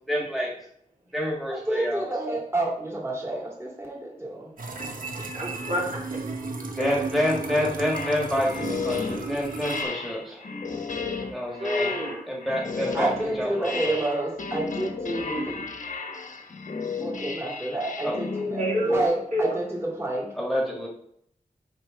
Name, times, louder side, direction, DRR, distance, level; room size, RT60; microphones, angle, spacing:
voice 1, 0.1-0.5 1.1-2.1 6.8-10.4 11.3-12.0 12.2-14.0 18.0-18.2 20.4-20.9, left 1 dB, ahead, -3 dB, 1.8 m, -28 dB
voice 2, 1.5-4.5 12.9-15.6 17.0-20.3, right 2 dB, 20° right, -4 dB, 2.4 m, -29 dB
sound 1, 4.6-9.8, right 3 dB, 85° right, 1.0 m, -34 dB
voice 3, 4.8-5.8 6.3-6.4 6.8-7.0 11.6-12.2 18.6-19.0 19.3-19.4, equal, 65° right, -5 dB, 3.4 m, -28 dB
sound 2, 7.9-19.1, left 4 dB, 70° left, 1.1 m, -33 dB
6.7 x 5.4 x 5.1 m, 0.71 s
wide cardioid pair, 85°, 14 cm